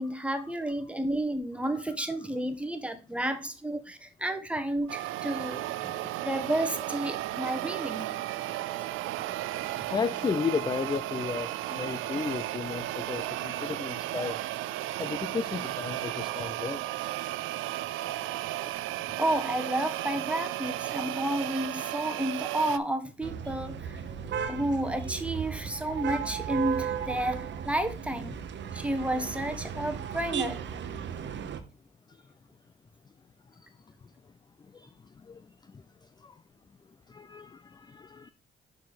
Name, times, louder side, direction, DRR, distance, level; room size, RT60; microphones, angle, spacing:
voice 1, 0.0-5.9 6.2-8.6 14.2-14.3 19.2-24.0 24.5-28.4 28.7-30.7, right 1 dB, 5° right, 1.2 m, -31 dB
sound 1, 4.9-22.8, right 15 dB, 85° right, 0.5 m, -34 dB
voice 2, 9.9-14.4 15.0-16.8 34.7-34.9 35.3-35.4 36.2-36.3 37.1-38.3, left 5 dB, 20° left, 0.4 m, -33 dB
sound 2, 23.2-31.6, right 8 dB, 65° right, 1.0 m, -35 dB
6.3 x 4.7 x 4.1 m
cardioid pair, 90°, 20 cm